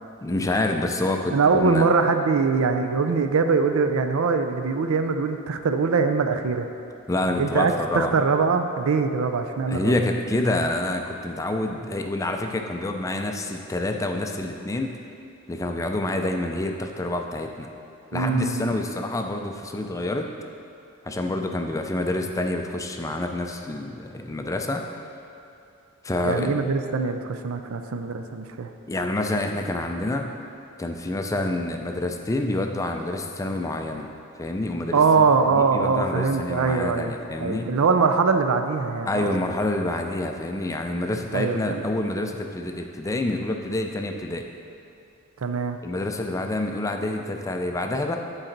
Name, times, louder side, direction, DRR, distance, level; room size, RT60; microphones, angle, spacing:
voice 1, 0.2-1.9 7.1-8.1 9.7-15.0 15.5-17.7 18.1-20.3 21.0-24.8 26.0-26.6 28.9-30.3 30.8-34.1 34.4-35.0 35.5-37.8 39.0-44.5 45.8-48.2, left 2 dB, 15° left, 4 dB, 0.3 m, -27 dB
voice 2, 1.3-6.7 7.4-9.9 18.1-18.7 26.2-28.7 34.9-37.1 37.4-39.3 41.3-41.8 45.4-45.8, right 4 dB, 70° right, 7 dB, 0.5 m, -22 dB
11.5 x 4.0 x 3.9 m, 2.6 s
head